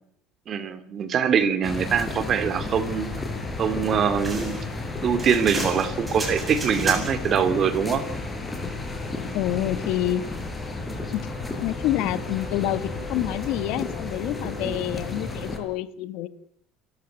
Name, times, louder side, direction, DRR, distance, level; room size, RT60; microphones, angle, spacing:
voice 1, 0.5-3.1 3.6-4.5 5.0-8.0 14.6-14.8, right 7 dB, 35° right, 11 dB, 2.7 m, -23 dB
sound 1, 1.6-15.6, left 3 dB, 15° left, 4.9 m, -32 dB
sound 2, 4.2-7.3, right 2 dB, 15° right, 7.2 m, -34 dB
voice 2, 9.3-10.2 11.1-11.3 11.6-16.3, left 14 dB, 65° left, 13 dB, 1.8 m, -27 dB
29.0 x 15.0 x 9.3 m, 0.69 s
cardioid pair, 145°, 0 cm